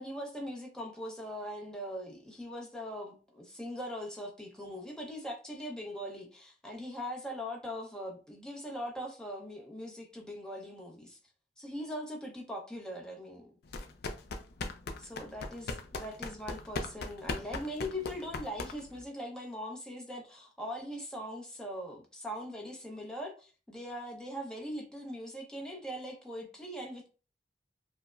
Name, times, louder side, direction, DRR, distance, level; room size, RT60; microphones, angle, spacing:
voice 1, 0.0-11.2 11.6-13.5 15.0-27.1, equal, 5° left, 0.7 m, -41 dB
sound 1, 13.7-19.0, left 3 dB, 60° left, 0.4 m, -39 dB
4.6 x 2.0 x 2.4 m
head